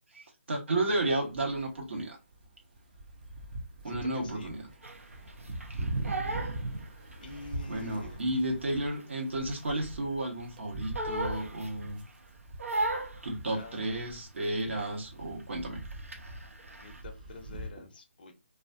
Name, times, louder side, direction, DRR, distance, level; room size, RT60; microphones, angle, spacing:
voice 1, 0.1-2.2 3.8-4.6 7.7-12.0 13.2-15.8, right 1 dB, 60° right, 0 dB, 1.1 m, -32 dB
sound 1, 0.8-2.0 2.3-17.7, right 2 dB, 40° right, 0.6 m, -42 dB
voice 2, 3.8-4.5 7.2-8.2 13.5-14.1 16.8-18.3, left 3 dB, 45° left, 5 dB, 0.5 m, -47 dB
Crying sobbing, 4.8-7.5 7.8-10.1 10.4-12.1 12.6-14.5 14.8-15.1 15.4-17.0, right 2 dB, 85° right, 0.6 m, -37 dB
2.4 x 2.2 x 2.5 m, 0.26 s
figure-of-eight pair, 150°, 7 cm